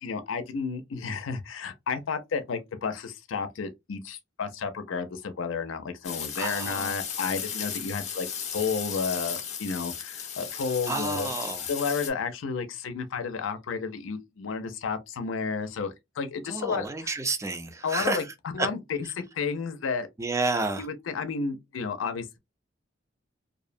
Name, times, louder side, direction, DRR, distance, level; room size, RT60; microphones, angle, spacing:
voice 1, 0.0-8.3 8.5-11.3 11.7-17.1 17.8-18.2 18.5-20.1 20.8-22.4, left 5 dB, 90° left, 0.5 m, -32 dB
sound 1, 6.0-12.1, left 8 dB, 35° left, 0.5 m, -35 dB
voice 2, 6.3-6.9 10.9-11.6 16.5-18.3 18.6-18.7 20.2-20.9, right 3 dB, 15° right, 0.4 m, -30 dB
2.5 x 2.0 x 2.5 m
head